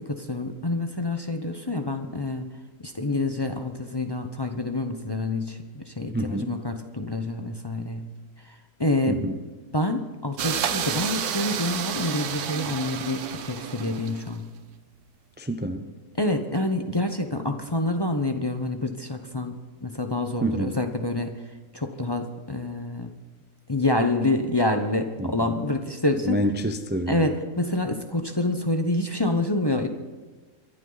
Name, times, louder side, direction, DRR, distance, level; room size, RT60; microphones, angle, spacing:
voice 1, 0.0-2.5 2.8-8.1 8.5-9.2 9.7-14.5 16.2-21.4 21.7-23.1 23.7-26.4 27.1-29.9, left 2 dB, 20° left, 5 dB, 0.7 m, -27 dB
voice 2, 6.1-6.5 9.1-9.4 15.4-15.9 20.4-20.8 25.2-25.4 26.2-27.3, right 1 dB, 15° right, 7 dB, 0.4 m, -27 dB
sound 1, 10.4-14.4, right 8 dB, 70° right, 1.3 m, -30 dB
24.5 x 11.5 x 4.0 m, 1.3 s
omnidirectional pair, 1.7 m